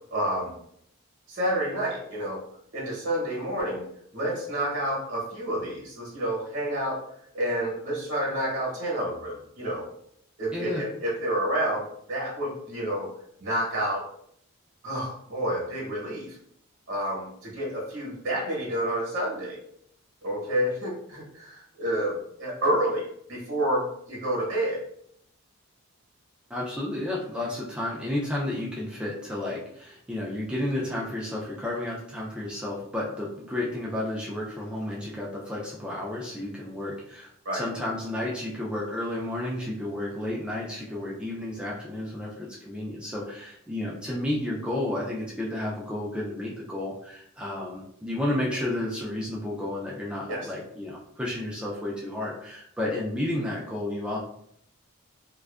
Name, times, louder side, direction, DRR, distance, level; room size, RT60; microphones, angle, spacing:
voice 1, 0.1-0.5 1.3-2.4 2.7-3.8 4.1-7.0 7.3-9.9 10.4-13.1 13.4-14.1 14.8-16.4 16.9-19.6 20.2-24.8 37.4-37.7 50.3-50.5, right 1 dB, 55° right, -4 dB, 0.9 m, -29 dB
voice 2, 10.5-10.8 26.5-54.2, left 1 dB, 5° right, -5 dB, 0.4 m, -32 dB
2.5 x 2.2 x 2.3 m, 0.69 s
head